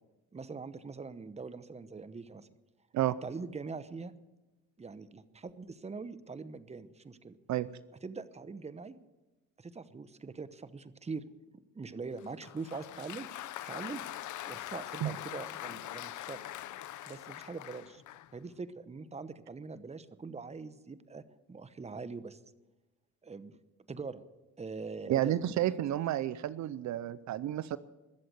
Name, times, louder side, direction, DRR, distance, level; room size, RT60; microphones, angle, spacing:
voice 1, 0.3-2.5 3.2-4.1 4.8-7.4 8.0-9.0 9.6-11.3 11.5-14.0 14.5-16.4 17.1-18.0 18.3-22.4 23.2-23.6 23.9-24.2 24.6-25.4, right 4 dB, 20° right, 14 dB, 0.9 m, -43 dB
Applause, 12.2-18.4, left 13 dB, 75° left, 0.7 m, -43 dB
voice 2, 25.1-27.8, right 13 dB, 70° right, 16 dB, 0.6 m, -31 dB
21.5 x 7.7 x 8.0 m, 1.1 s
cardioid pair, 90°, 30 cm